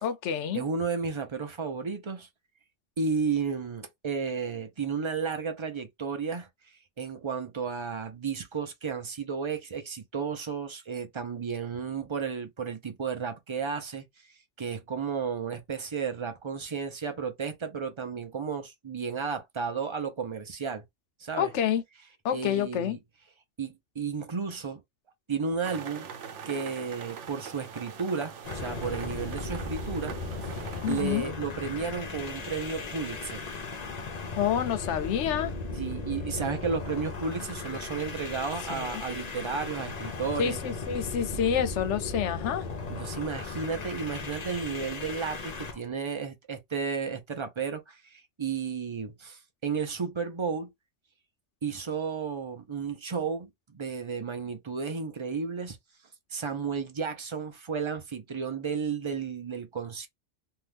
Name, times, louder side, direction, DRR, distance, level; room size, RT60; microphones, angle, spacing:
voice 1, 0.0-0.6 21.4-21.8 22.2-23.0 30.8-31.3 34.3-35.5 38.7-39.0 40.4-42.6, left 9 dB, 75° left, 0.9 m, -28 dB
voice 2, 0.5-2.3 3.0-6.5 7.0-14.0 14.6-20.8 21.2-21.5 22.3-23.0 23.6-24.8 25.3-26.1 26.5-30.1 30.4-33.5 35.8-40.6 42.9-50.7 51.6-55.8 56.3-60.1, right 5 dB, 35° right, 0.5 m, -33 dB
sound 1, 25.6-31.0, right 7 dB, 85° right, 1.1 m, -42 dB
sound 2, 28.4-45.8, left 3 dB, 45° left, 0.7 m, -37 dB
2.8 x 2.3 x 3.3 m
omnidirectional pair, 1.2 m